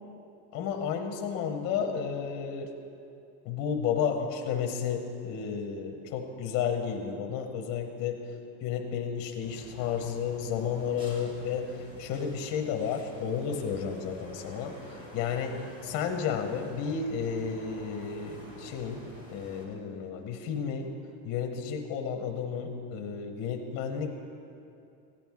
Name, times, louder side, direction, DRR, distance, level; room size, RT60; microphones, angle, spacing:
voice 1, 0.5-2.7 3.4-8.2 8.6-11.7 12.0-19.0 19.3-20.9 21.2-24.1, left 7 dB, 30° left, 4 dB, 0.6 m, -32 dB
sound 1, 9.4-19.7, equal, 10° right, 1.4 m, -48 dB
14.5 x 9.0 x 3.5 m, 2.6 s
supercardioid pair, 165°, 48 cm